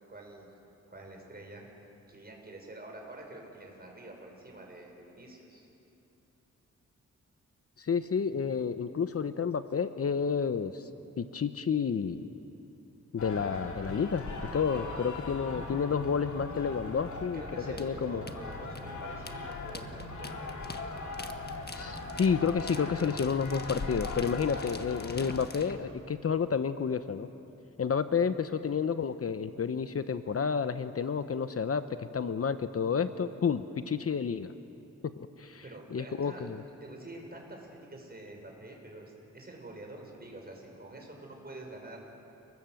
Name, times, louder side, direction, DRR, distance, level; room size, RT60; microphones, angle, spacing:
voice 1, 0.1-0.5 0.9-1.7 2.1-5.7 14.7-15.0 17.3-20.8 35.6-36.5 36.8-42.0, right 2 dB, 30° right, 1 dB, 6.2 m, -47 dB
voice 2, 7.8-10.9 11.2-12.3 13.1-14.3 14.5-17.4 17.8-18.2 21.7-27.3 27.8-34.5 35.2-35.6 35.9-36.6, left 6 dB, 50° left, 11 dB, 0.9 m, -30 dB
sound 1, 13.2-25.5, left 3 dB, 70° left, 3.3 m, -40 dB
sound 2, 17.8-25.8, left 3 dB, 30° left, 1.5 m, -46 dB
29.5 x 20.5 x 7.8 m, 2.9 s
cardioid pair, 85°, 30 cm